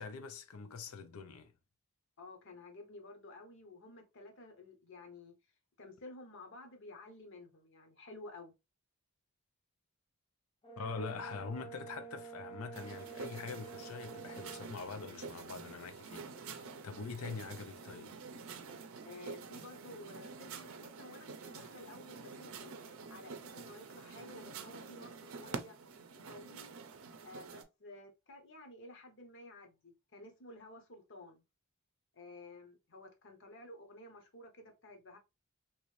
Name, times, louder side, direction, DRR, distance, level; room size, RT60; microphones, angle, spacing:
voice 1, 0.0-1.5 10.8-18.2, left 4 dB, 80° left, 0.5 m, -44 dB
voice 2, 2.2-5.4 5.8-8.5 19.0-22.7 23.1-25.8 26.1-26.7 27.2-31.4 32.1-35.2, left 2 dB, 60° left, 0.9 m, -53 dB
Brass instrument, 10.6-14.7, right 6 dB, 25° left, 0.6 m, -49 dB
sound 1, 12.7-27.6, right 5 dB, 70° right, 0.5 m, -48 dB
3.1 x 2.6 x 3.1 m
head